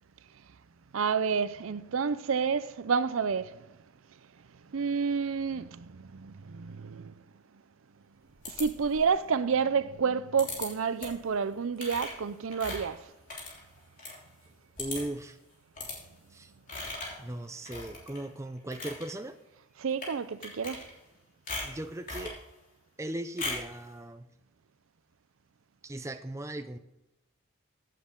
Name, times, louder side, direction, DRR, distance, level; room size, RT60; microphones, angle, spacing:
voice 1, 0.9-3.6 4.7-7.1 8.5-13.0 19.8-20.8, right 6 dB, 75° right, 0.5 m, -29 dB
sound 1, 8.4-9.1 10.4-10.7 11.0-11.3 11.8-14.2 14.5-14.6 14.8-15.2 15.8-16.0 16.7-17.2 17.6-18.2 18.6-19.0 19.9-20.1 20.4-21.1 21.5-22.4 23.4-23.7, left 3 dB, 40° left, 3.4 m, -38 dB
voice 2, 14.8-15.4 16.3-16.5 17.2-19.4 21.6-22.4 23.0-24.3 25.8-26.8, right 1 dB, 15° right, 0.5 m, -38 dB
16.0 x 8.4 x 3.7 m
head